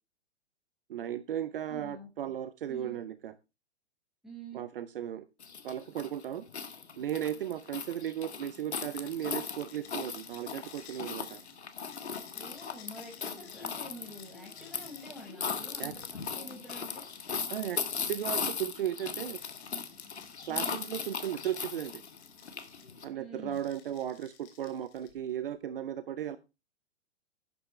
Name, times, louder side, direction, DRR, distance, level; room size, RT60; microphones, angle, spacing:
voice 1, 0.9-3.4 4.5-5.3 5.6-6.4 7.0-11.4 15.8-15.9 17.5-17.8 18.1-19.4 20.5-22.0 23.0-26.4, right 10 dB, 50° right, 14 dB, 0.9 m, -36 dB
voice 2, 1.7-2.3 2.7-3.0 4.2-4.6 12.3-17.1 20.5-20.8 23.1-23.7, equal, ahead, -2 dB, 5.7 m, -48 dB
sound 1, 5.4-23.0, left 6 dB, 70° left, 1.6 m, -38 dB
sound 2, 8.9-18.6 19.1-23.1 23.5-25.3, left 8 dB, 35° left, 3.0 m, -56 dB
12.0 x 9.7 x 3.3 m, 0.27 s
figure-of-eight pair, 110°, 35 cm